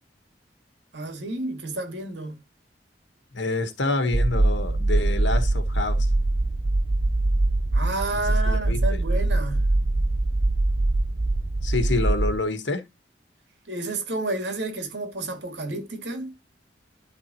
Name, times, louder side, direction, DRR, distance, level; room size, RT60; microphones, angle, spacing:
voice 1, 0.9-2.4 7.7-9.7 13.6-16.3, right 2 dB, 70° right, 2.4 m, -31 dB
voice 2, 3.3-6.1 8.1-8.8 11.6-12.8, left 2 dB, 85° left, 1.3 m, -27 dB
sound 1, 4.1-12.4, right 2 dB, 25° right, 0.4 m, -23 dB
11.5 x 4.0 x 3.0 m
head